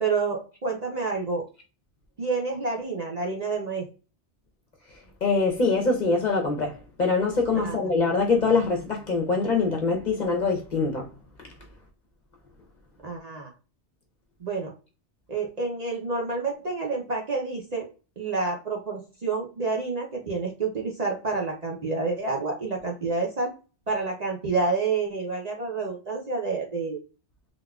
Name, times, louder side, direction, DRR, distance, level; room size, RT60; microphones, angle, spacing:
voice 1, 0.0-1.4 2.2-3.9 7.6-7.8 13.0-13.5 14.4-14.7 15.3-17.9 18.2-23.5 23.9-27.0, right 4 dB, 45° right, 0.6 m, -28 dB
voice 2, 5.2-11.1, left 4 dB, 45° left, 0.7 m, -24 dB
3.9 x 2.2 x 2.3 m
omnidirectional pair, 1.2 m